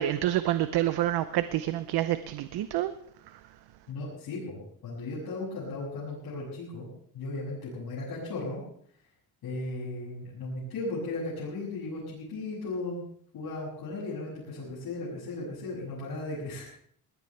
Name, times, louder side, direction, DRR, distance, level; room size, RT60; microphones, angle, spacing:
voice 1, 0.0-2.9, right 13 dB, 85° right, 12 dB, 0.8 m, -28 dB
voice 2, 3.9-6.9 7.1-8.6 9.4-13.0 13.3-16.7, left 2 dB, 75° left, -8 dB, 7.2 m, -36 dB
21.5 x 18.5 x 3.3 m, 0.63 s
cardioid pair, 155°, 38 cm